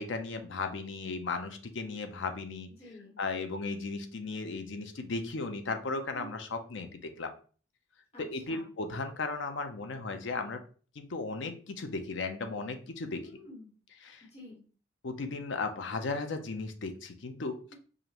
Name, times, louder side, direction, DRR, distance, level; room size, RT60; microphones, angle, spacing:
voice 1, 0.0-2.7 3.2-7.3 8.2-10.6 11.0-13.2 14.1-14.2 15.0-17.6, left 3 dB, 70° left, 7 dB, 0.6 m, -36 dB
voice 2, 2.8-3.2 6.1-6.4 8.1-8.7 13.2-13.7 14.3-14.6 17.7-17.8, equal, 30° left, -4 dB, 1.4 m, -49 dB
4.9 x 2.5 x 2.9 m, 0.40 s
head